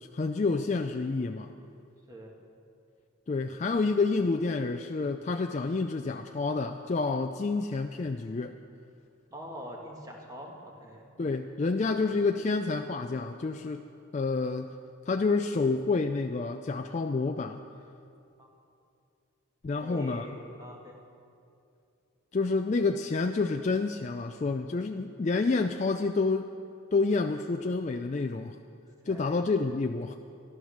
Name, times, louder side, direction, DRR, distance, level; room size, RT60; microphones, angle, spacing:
voice 1, 0.1-1.5 3.3-8.5 11.2-13.8 14.1-14.7 15.1-17.6 19.6-20.3 22.3-26.5 26.9-28.6 29.0-30.1, left 3 dB, 35° left, 5 dB, 0.3 m, -28 dB
voice 2, 9.3-11.1 18.4-18.5 19.8-20.9 29.1-29.4, equal, 15° right, -1 dB, 1.8 m, -44 dB
14.0 x 12.0 x 6.5 m, 2.5 s
head